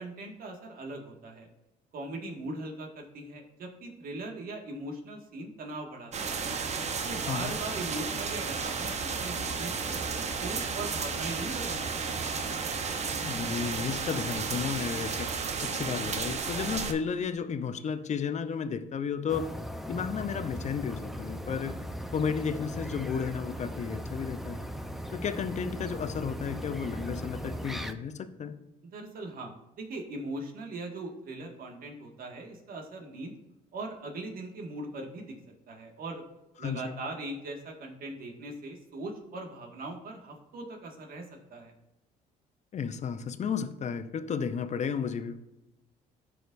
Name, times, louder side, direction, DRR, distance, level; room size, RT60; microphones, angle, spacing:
voice 1, 0.0-1.5 1.9-6.1 6.4-6.6 7.0-10.0 10.4-11.8 28.9-33.3 33.7-35.4 35.7-36.2 36.6-41.3 41.5-41.7, right 2 dB, 60° right, 2 dB, 1.8 m, -40 dB
sound 1, 6.1-16.9, right 5 dB, 40° right, 0.9 m, -33 dB
voice 2, 7.2-7.6 13.2-15.3 15.6-19.5 19.9-21.7 22.1-24.6 25.1-28.6 36.6-37.0 42.7-45.4, left 6 dB, 45° left, 10 dB, 0.7 m, -33 dB
sound 2, 19.3-27.9, equal, ahead, 0.7 m, -38 dB
14.0 x 5.1 x 2.6 m, 0.93 s
supercardioid pair, 75°, 17 cm